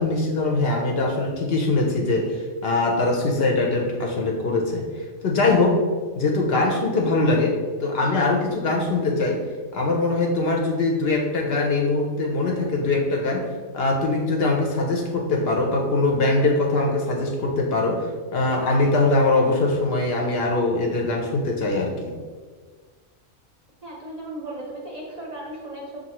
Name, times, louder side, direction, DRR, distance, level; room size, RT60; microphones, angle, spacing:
voice 1, 0.0-4.9 5.2-5.8 6.1-9.4 9.7-13.5 13.7-22.1, left 2 dB, 60° left, 0 dB, 0.8 m, -22 dB
voice 2, 23.8-26.0, right 1 dB, 40° right, -3 dB, 0.6 m, -36 dB
5.3 x 2.7 x 2.9 m, 1.5 s
omnidirectional pair, 1.2 m